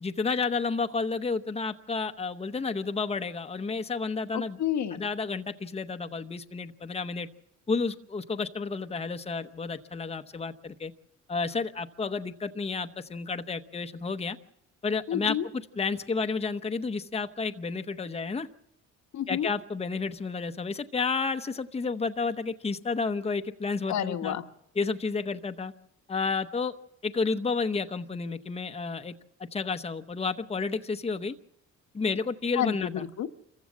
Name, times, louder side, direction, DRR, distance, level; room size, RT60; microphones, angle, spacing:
voice 1, 0.0-4.6 4.9-7.3 7.7-10.9 11.3-14.4 14.8-15.4 15.8-18.5 19.3-24.3 24.8-25.7 26.1-26.7 27.0-29.1 29.5-31.4 31.9-33.0, left 4 dB, 20° left, 8 dB, 0.9 m, -31 dB
voice 2, 4.3-5.1 15.1-15.5 19.1-19.5 23.9-24.4 32.6-33.3, left 10 dB, 70° left, 8 dB, 1.2 m, -30 dB
26.5 x 15.0 x 7.3 m, 0.80 s
cardioid pair, 90°, 30 cm